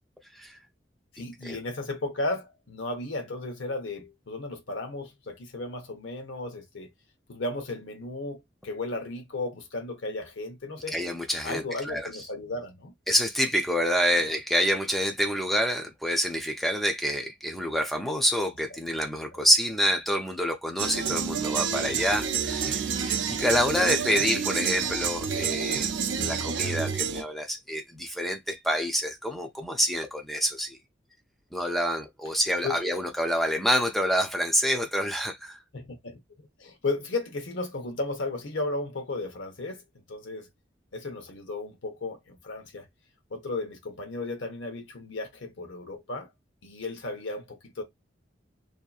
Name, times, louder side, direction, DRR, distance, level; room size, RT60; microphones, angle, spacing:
voice 1, 1.1-6.9 7.3-11.0 11.4-12.9 14.1-14.2 32.6-32.8 35.7-36.2 36.6-39.8 40.1-40.5 40.9-42.9 43.3-46.3 46.6-47.8, left 2 dB, 80° left, 0.8 m, -34 dB
voice 2, 10.9-12.1 13.1-30.8 31.5-35.6, equal, ahead, 0.4 m, -27 dB
sound 1, 20.8-27.2, right 7 dB, 75° right, 0.4 m, -29 dB
2.7 x 2.4 x 2.3 m
head